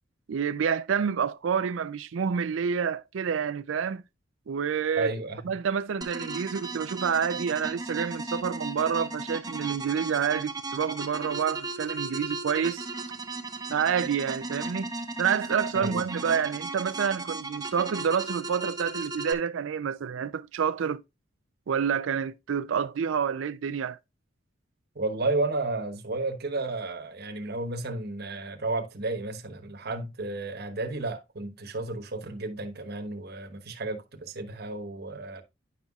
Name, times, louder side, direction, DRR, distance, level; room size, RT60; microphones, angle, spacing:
voice 1, 0.3-4.0 4.5-5.1 5.5-12.9 13.7-14.9 15.2-21.0 21.7-24.0, right 7 dB, 80° right, 0.4 m, -28 dB
voice 2, 5.0-5.5 15.7-16.0 24.9-35.4, right 2 dB, 55° right, 1.1 m, -32 dB
sound 1, 6.0-19.3, right 3 dB, 20° right, 0.7 m, -36 dB
10.5 x 5.5 x 2.3 m
head